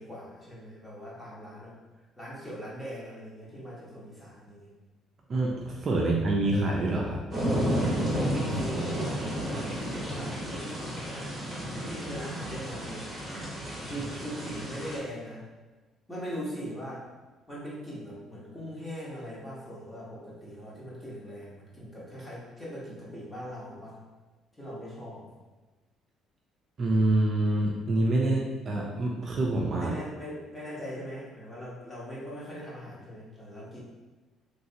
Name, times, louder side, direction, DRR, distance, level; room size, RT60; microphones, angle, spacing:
voice 1, 0.0-1.8 2.2-4.7 8.0-11.3 11.6-13.1 13.5-15.4 16.1-17.1 17.5-24.0 24.6-25.3 29.8-33.8, equal, 10° left, -6 dB, 1.0 m, -41 dB
voice 2, 5.3-7.2 26.8-29.9, right 2 dB, 35° right, -2 dB, 0.4 m, -26 dB
sound 1, 7.3-15.0, equal, 20° right, 0.9 m, -32 dB
3.1 x 2.6 x 2.7 m, 1.2 s
cardioid pair, 125°, 0 cm